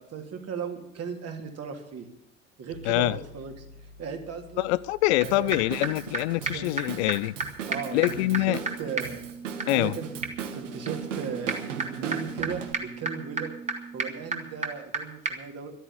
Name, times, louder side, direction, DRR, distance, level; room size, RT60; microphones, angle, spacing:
voice 1, 0.0-2.1 2.6-3.7 4.0-4.7 5.2-5.5 6.5-6.8 7.7-9.3 9.7-10.1 10.5-11.5 12.0-13.5 13.9-15.8, right 6 dB, 40° right, 2.7 m, -36 dB
sound 1, 2.7-12.6, left 3 dB, 90° left, 1.8 m, -54 dB
voice 2, 2.9-3.2 4.6-7.3 7.9-8.6 9.7-9.9, left 19 dB, 60° left, 0.5 m, -25 dB
sound 2, 5.2-5.3 5.5-5.6 5.8-5.9 6.1-6.2 6.5-6.6 6.8-6.9 7.1-7.2 7.4-7.5 7.7-15.0 15.3-15.4, right 3 dB, 20° right, 2.0 m, -34 dB
Drum kit / Drum, 5.2-12.7, right 7 dB, 70° right, 1.5 m, -38 dB
12.5 x 9.1 x 9.8 m
figure-of-eight pair, 60°, 38 cm